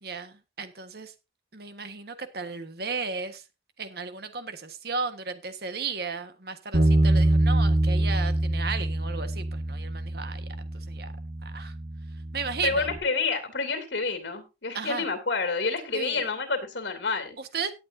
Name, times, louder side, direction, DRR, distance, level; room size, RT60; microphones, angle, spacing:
voice 1, 0.0-1.1 1.5-3.4 3.8-10.5 10.9-11.1 11.4-11.7 12.3-12.9 14.7-15.0 15.9-16.2 17.4-17.7, right 4 dB, 60° right, 1.5 m, -34 dB
Bass guitar, 6.7-13.0, right 1 dB, 85° right, 2.0 m, -25 dB
voice 2, 12.6-17.4, left 4 dB, 85° left, 2.9 m, -28 dB
17.5 x 8.6 x 2.7 m
head